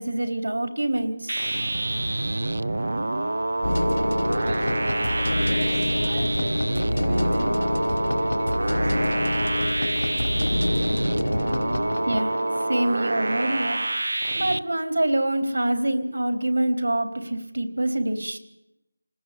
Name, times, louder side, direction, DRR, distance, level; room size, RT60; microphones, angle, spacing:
voice 1, 0.0-1.6 12.1-12.4 12.7-13.8 14.3-18.4, right 1 dB, 90° right, 6 dB, 3.8 m, -25 dB
sound 1, 1.3-14.6, right 2 dB, 65° right, 0.8 m, -27 dB
sound 2, 3.6-13.7, left 1 dB, 85° left, 1.5 m, -27 dB
voice 2, 4.4-9.3, right 2 dB, 15° right, 0 dB, 2.4 m, -40 dB
27.5 x 19.0 x 8.4 m, 0.88 s
figure-of-eight pair, 180°, 0 cm